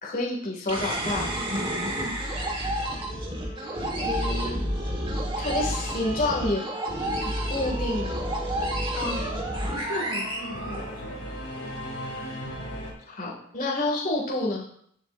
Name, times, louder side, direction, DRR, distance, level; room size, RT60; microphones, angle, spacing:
voice 1, 0.0-1.3 4.0-4.6 5.4-6.6 7.2-8.2 13.1-14.7, left 2 dB, 40° left, -4 dB, 2.5 m, -29 dB
sound 1, 0.7-11.3, right 1 dB, 25° right, 1.7 m, -30 dB
voice 2, 1.9-2.2 8.9-11.4, left 1 dB, 75° left, -2 dB, 2.4 m, -36 dB
Singing / Musical instrument, 3.0-12.9, equal, 55° left, 2.8 m, -40 dB
15.0 x 7.4 x 2.7 m, 0.66 s
head